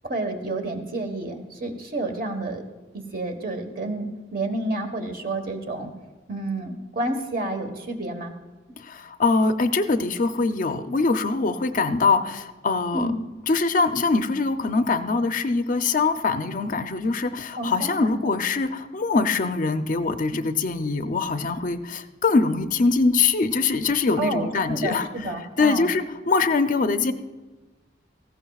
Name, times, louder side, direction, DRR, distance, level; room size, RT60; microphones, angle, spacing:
voice 1, 0.0-2.6 2.9-5.9 6.3-8.3 12.9-13.1 17.6-18.1 24.2-25.9, right 2 dB, 50° right, 5 dB, 1.3 m, -29 dB
voice 2, 8.8-13.1 13.5-25.3 25.6-27.1, left 4 dB, 45° left, 9 dB, 0.5 m, -23 dB
18.0 x 15.0 x 2.4 m, 1.2 s
head